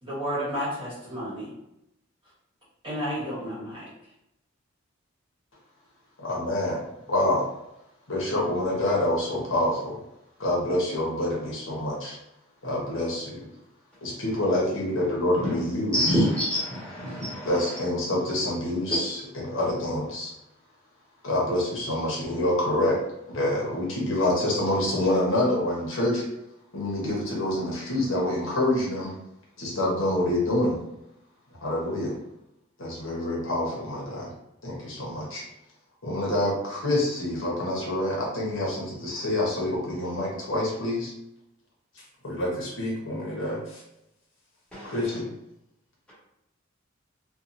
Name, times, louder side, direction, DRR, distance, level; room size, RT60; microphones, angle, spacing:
voice 1, 0.0-1.5 2.8-3.8, equal, 25° right, -9 dB, 1.0 m, -31 dB
voice 2, 6.2-6.8 7.1-7.5 8.1-10.0 10.4-12.2 12.6-13.5 14.0-16.3 17.4-20.3 21.2-23.0 23.3-26.2 26.7-29.1 29.6-30.8 31.6-32.2 32.8-34.3 34.6-35.4 36.0-41.1 42.2-43.8 44.8-45.3, left 1 dB, 80° left, -4 dB, 1.0 m, -27 dB
voice 3, 15.9-17.5 44.7-44.9, equal, 5° left, -9 dB, 1.2 m, -26 dB
2.8 x 2.3 x 2.5 m, 0.84 s
head